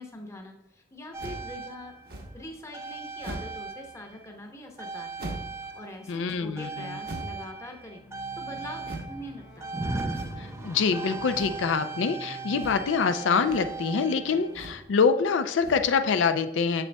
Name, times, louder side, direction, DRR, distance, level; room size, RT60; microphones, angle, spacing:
voice 1, 0.0-1.9 2.3-5.1 5.6-8.0 8.4-9.7, left 1 dB, 15° left, 2 dB, 0.8 m, -43 dB
sound 1, 1.1-4.4 4.8-14.9 15.8-15.9, right 3 dB, 15° right, 0.4 m, -38 dB
sound 2, 1.2-1.5 2.1-2.5 3.2-3.6 5.2-5.6 7.0-7.5 8.8-9.2 10.1-10.5 11.3-11.7 12.5-13.0 13.3-13.8 14.5-14.9 15.5-16.0, right 1 dB, 55° right, 0.9 m, -40 dB
voice 2, 6.1-7.0 10.6-16.9, left 5 dB, 85° left, 10 dB, 0.4 m, -25 dB
sound 3, 7.9-14.7, left 1 dB, 60° left, 1.1 m, -48 dB
7.1 x 6.7 x 2.2 m, 0.88 s
head